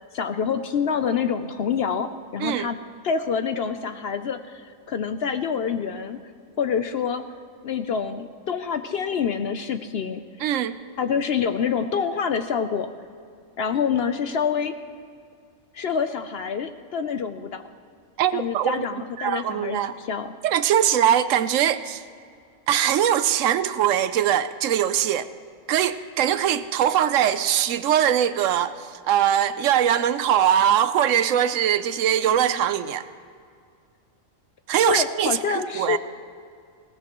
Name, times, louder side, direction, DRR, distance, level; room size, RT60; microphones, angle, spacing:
voice 1, 0.1-2.8 3.0-6.2 6.6-7.2 7.6-10.2 11.0-12.9 13.6-14.8 15.7-17.6 18.3-20.3 34.9-36.0, left 6 dB, 60° left, 9 dB, 0.7 m, -26 dB
voice 2, 10.4-10.8 18.2-18.9 19.2-19.9 20.4-22.0 22.7-25.3 25.7-33.0 34.7-36.0, right 10 dB, 75° right, 13 dB, 0.9 m, -22 dB
20.0 x 17.5 x 3.0 m, 2.3 s
omnidirectional pair, 1.4 m